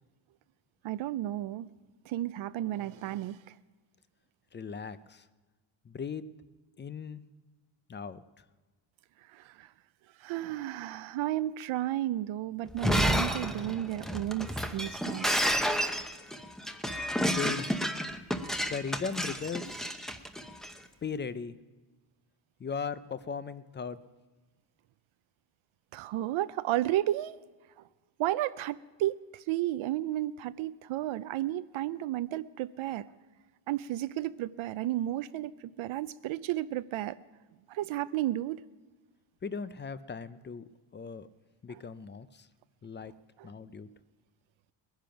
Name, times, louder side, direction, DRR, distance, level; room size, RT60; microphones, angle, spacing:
voice 1, 0.8-1.7 2.0-3.4 9.2-9.7 10.2-15.3 25.9-27.4 27.8-27.9 28.2-33.1 33.7-37.2 37.7-38.6 41.7-41.8 43.4-43.5, right 14 dB, 75° right, 14 dB, 0.6 m, -33 dB
voice 2, 4.5-5.2 5.9-6.3 6.8-7.2 7.9-8.2 17.4-17.7 18.7-19.9 21.0-21.6 22.6-24.0 39.4-41.3 41.6-42.5 42.8-43.1 43.4-43.9, left 6 dB, 25° left, 14 dB, 0.4 m, -38 dB
Shatter, 12.7-20.7, equal, ahead, 0.7 m, -30 dB
20.5 x 10.5 x 5.8 m, 1.3 s
cardioid pair, 140°, 48 cm